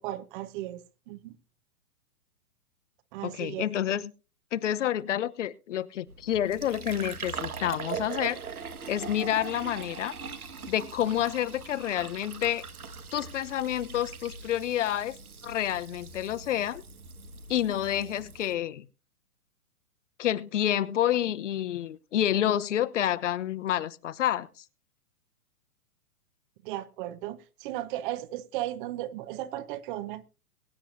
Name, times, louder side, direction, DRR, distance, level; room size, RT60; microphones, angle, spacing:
voice 1, 0.0-1.4 3.1-3.6 26.6-30.3, right 14 dB, 35° right, 1.3 m, -36 dB
voice 2, 3.2-4.1 4.5-8.4 8.9-10.1 10.7-12.6 13.1-15.2 15.4-16.8 17.5-18.9 20.2-24.6, left 11 dB, 55° left, 1.1 m, -29 dB
Fill (with liquid), 6.1-18.5, right 5 dB, 75° right, 1.9 m, -41 dB
22.5 x 10.0 x 2.7 m
figure-of-eight pair, 115°, 44 cm